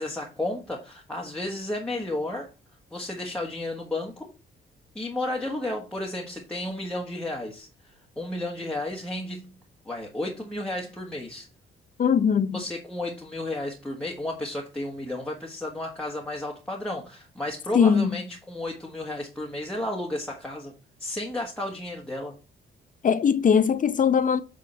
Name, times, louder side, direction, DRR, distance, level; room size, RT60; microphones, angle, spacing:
voice 1, 0.0-2.5 2.9-4.3 4.9-9.5 9.8-11.5 12.5-20.7 21.0-22.4, left 1 dB, 5° left, 1.5 m, -33 dB
voice 2, 12.0-12.6 17.7-18.1 23.0-24.4, left 7 dB, 40° left, 0.6 m, -20 dB
8.3 x 3.7 x 4.5 m
cardioid pair, 90°, 20 cm